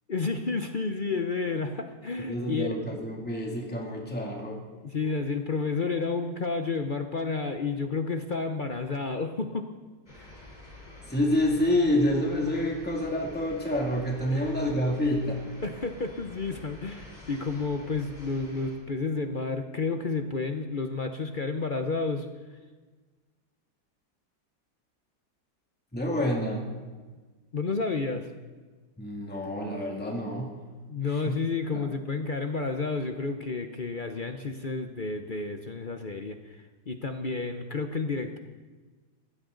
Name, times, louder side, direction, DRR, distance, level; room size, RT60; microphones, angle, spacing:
voice 1, 0.1-2.9 4.8-9.8 10.2-10.3 14.3-14.4 15.6-22.3 27.5-28.3 30.9-38.4, left 4 dB, 45° left, 6 dB, 0.7 m, -31 dB
voice 2, 2.3-4.6 5.0-5.1 11.0-15.3 25.9-26.7 29.0-30.6 31.0-31.4 31.7-31.9, left 1 dB, 5° left, -1 dB, 2.5 m, -28 dB
sound 1, 10.1-18.8, left 1 dB, 20° left, 3.8 m, -48 dB
20.5 x 16.5 x 3.9 m, 1.4 s
omnidirectional pair, 1.9 m